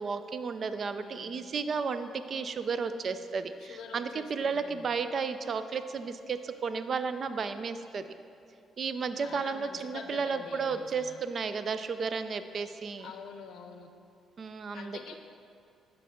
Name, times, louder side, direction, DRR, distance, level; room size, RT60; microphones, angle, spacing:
voice 1, 0.0-8.1 8.8-13.1 14.4-15.0, right 5 dB, 50° right, 10 dB, 0.3 m, -33 dB
voice 2, 1.0-1.3 3.6-5.0 9.2-11.2 13.0-13.9 14.7-15.2, left 6 dB, 75° left, 6 dB, 0.5 m, -46 dB
8.3 x 5.3 x 3.6 m, 2.5 s
cardioid pair, 90°, 0 cm